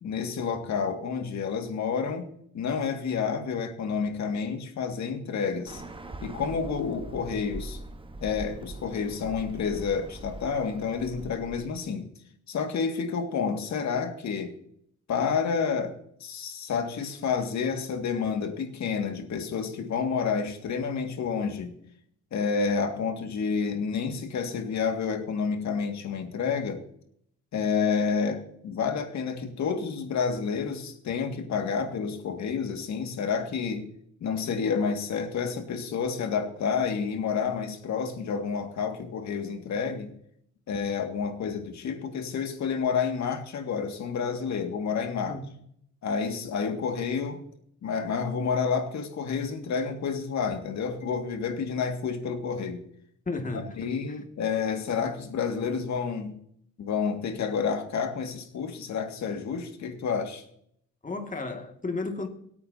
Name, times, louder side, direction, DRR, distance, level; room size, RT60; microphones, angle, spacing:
voice 1, 0.0-2.3 2.5-5.8 6.2-7.8 8.2-12.1 12.5-14.5 15.1-21.7 22.3-26.8 27.5-33.9 34.2-40.1 40.7-45.4 46.0-47.4 47.8-52.8 53.5-56.4 56.8-60.4, left 6 dB, 65° left, 5 dB, 2.1 m, -29 dB
Bird, 5.7-11.8, right 2 dB, 15° right, 1.2 m, -42 dB
voice 2, 53.3-54.2 61.0-62.3, left 3 dB, 25° left, 4 dB, 2.1 m, -33 dB
23.5 x 8.6 x 2.8 m, 0.70 s
cardioid pair, 90°, 30 cm